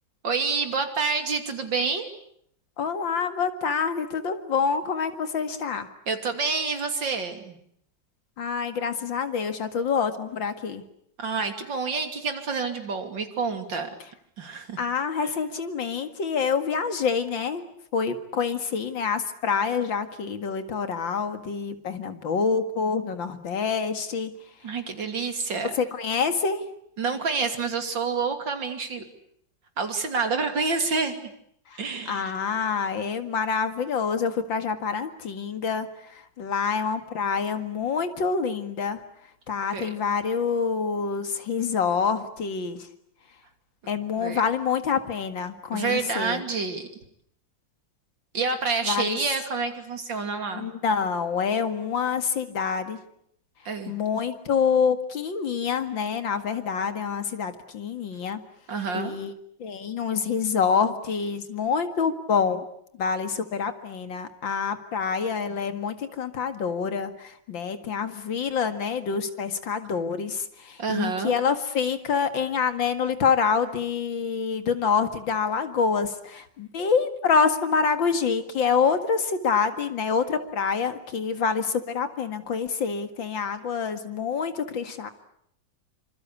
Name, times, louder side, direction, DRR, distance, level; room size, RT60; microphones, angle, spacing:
voice 1, 0.2-2.1 6.1-7.6 11.2-13.9 14.4-14.8 24.6-25.7 27.0-29.0 29.8-31.3 31.8-32.4 39.7-39.9 44.2-44.4 45.7-46.9 48.3-50.7 53.7-53.9 58.7-59.2 70.8-71.3, right 4 dB, 75° right, 6 dB, 3.5 m, -28 dB
voice 2, 2.8-5.9 8.4-10.8 14.8-17.6 17.9-24.3 25.8-26.6 31.7-31.8 32.1-39.0 39.5-42.9 43.9-46.4 48.8-49.2 50.5-53.0 53.9-58.4 58.9-59.3 59.6-62.6 63.0-85.1, left 6 dB, 85° left, 9 dB, 2.7 m, -26 dB
27.0 x 26.0 x 8.4 m, 0.71 s
omnidirectional pair, 2.0 m